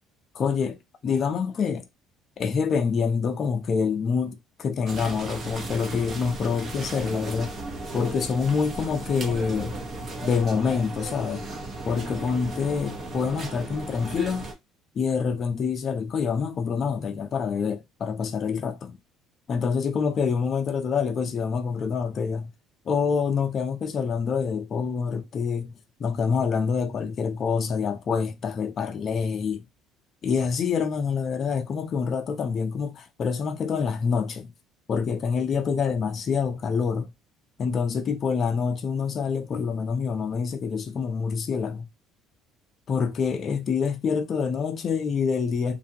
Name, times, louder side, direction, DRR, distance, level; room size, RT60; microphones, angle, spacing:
voice 1, 0.3-1.9 2.4-7.5 7.9-9.7 10.2-11.4 11.8-14.5 15.0-19.0 19.5-22.5 22.9-25.7 26.0-29.6 30.2-34.5 34.9-37.1 37.6-41.9 42.9-45.8, left 6 dB, 40° left, 0.5 m, -26 dB
sound 1, 4.9-14.5, right 2 dB, 40° right, 0.7 m, -36 dB
2.6 x 2.2 x 2.7 m
cardioid pair, 115°, 0 cm